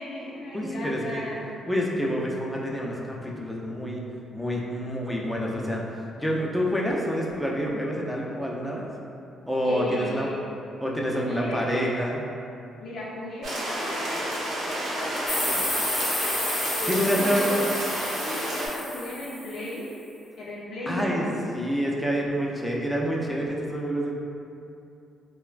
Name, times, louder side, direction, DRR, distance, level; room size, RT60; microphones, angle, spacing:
voice 1, 0.0-1.5 9.6-10.4 11.1-12.0 12.8-15.7 16.8-17.7 18.0-19.9 20.4-21.5, left 1 dB, 85° left, -9 dB, 0.5 m, -35 dB
voice 2, 0.5-1.2 1.7-4.0 4.3-8.9 9.5-10.4 10.8-12.2 16.9-17.6 20.9-24.2, equal, 5° left, -2 dB, 0.4 m, -27 dB
sound 1, 13.4-18.7, right 1 dB, 65° right, 0.6 m, -30 dB
sound 2, 15.3-19.7, left 1 dB, 25° left, 0.7 m, -31 dB
3.0 x 2.1 x 2.4 m, 2.6 s
cardioid pair, 90°, 0 cm